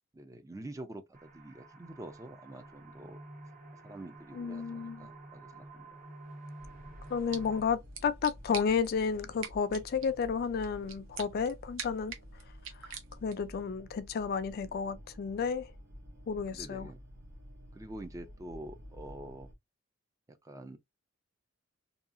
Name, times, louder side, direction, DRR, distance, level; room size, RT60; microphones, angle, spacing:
voice 1, 0.1-3.2 3.8-5.9 16.5-17.0 17.7-19.5 20.3-20.8, right 1 dB, 15° right, 0.4 m, -46 dB
sound 1, 1.1-7.6, right 2 dB, 45° right, 0.9 m, -50 dB
voice 2, 4.3-5.1 7.1-12.1 12.8-15.7 16.3-16.9, left 6 dB, 50° left, 0.4 m, -32 dB
sound 2, 6.6-19.5, equal, 60° right, 1.5 m, -51 dB
sound 3, 7.0-13.5, right 7 dB, 90° right, 0.7 m, -47 dB
2.8 x 2.3 x 2.4 m
head